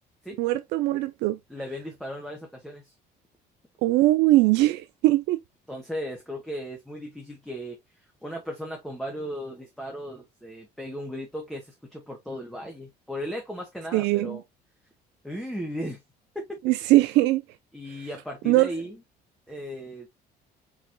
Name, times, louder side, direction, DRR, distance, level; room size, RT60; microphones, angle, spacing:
voice 1, 0.4-1.4 3.8-5.4 13.9-14.4 16.6-17.4 18.5-18.7, right 17 dB, 90° right, 0.4 m, -21 dB
voice 2, 1.5-2.9 5.7-7.8 8.2-14.4 15.2-16.0 16.3-16.6 17.7-19.0 19.5-20.1, equal, ahead, 1.2 m, -36 dB
4.8 x 2.9 x 2.7 m
cardioid pair, 110°, 17 cm